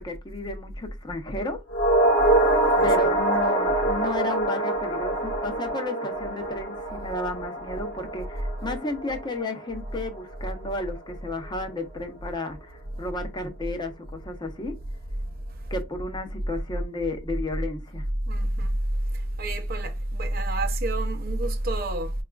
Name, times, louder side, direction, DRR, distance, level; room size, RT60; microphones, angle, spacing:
voice 1, 0.0-1.6 2.8-14.7 15.7-18.0, left 1 dB, 25° left, 0.6 m, -32 dB
sound 1, 1.7-10.2 10.5-10.6, right 1 dB, 55° left, 1.0 m, -25 dB
voice 2, 18.3-18.7 19.4-22.1, right 1 dB, 50° right, 0.6 m, -27 dB
4.0 x 2.4 x 2.2 m
head